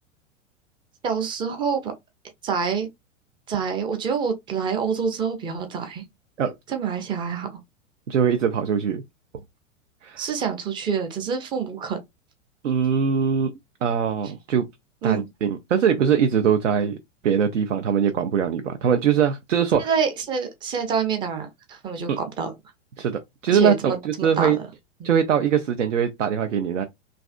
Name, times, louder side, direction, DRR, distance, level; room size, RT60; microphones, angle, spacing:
voice 1, 1.0-1.9 2.4-2.9 3.5-6.0 6.7-7.6 10.2-12.0 15.0-15.3 19.8-22.5 23.5-24.6 25.0-25.1, right 6 dB, 15° right, 0.4 m, -26 dB
voice 2, 8.1-9.0 10.0-10.3 12.6-13.5 13.8-14.7 15.0-17.0 17.2-19.9 22.1-22.2 23.0-24.6 25.0-26.8, right 7 dB, 70° right, 0.5 m, -22 dB
3.2 x 2.5 x 2.3 m
figure-of-eight pair, 95°, 38 cm